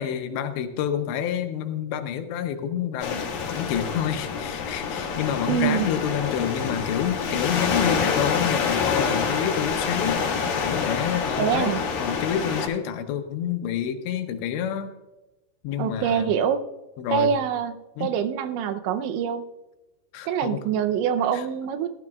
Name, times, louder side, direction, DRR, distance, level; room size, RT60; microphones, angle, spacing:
voice 1, 0.0-10.2 10.6-14.9 15.6-16.3 17.0-17.3 18.0-18.1 20.1-20.6 21.3-21.4, left 9 dB, 80° left, 7 dB, 2.9 m, -28 dB
sound 1, 3.0-12.7, left 5 dB, 60° left, 3.1 m, -27 dB
voice 2, 5.5-5.9 11.4-11.8 15.8-16.6 17.1-19.5 20.3-21.9, right 8 dB, 80° right, 9 dB, 3.0 m, -25 dB
17.0 x 12.5 x 2.3 m, 1.1 s
omnidirectional pair, 5.4 m